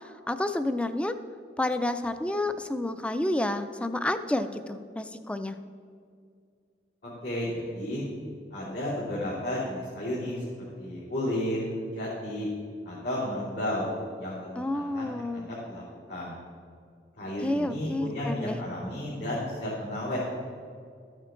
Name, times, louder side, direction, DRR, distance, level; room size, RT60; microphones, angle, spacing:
voice 1, 0.3-1.1 1.6-5.6 14.6-15.7 17.4-18.6, left 1 dB, 5° left, 10 dB, 0.4 m, -30 dB
voice 2, 7.0-8.0 8.5-10.4 10.8-12.5 12.8-15.8 16.1-16.4 17.2-20.4, left 1 dB, 80° left, -10 dB, 3.2 m, -33 dB
13.5 x 8.9 x 3.8 m, 2.2 s
head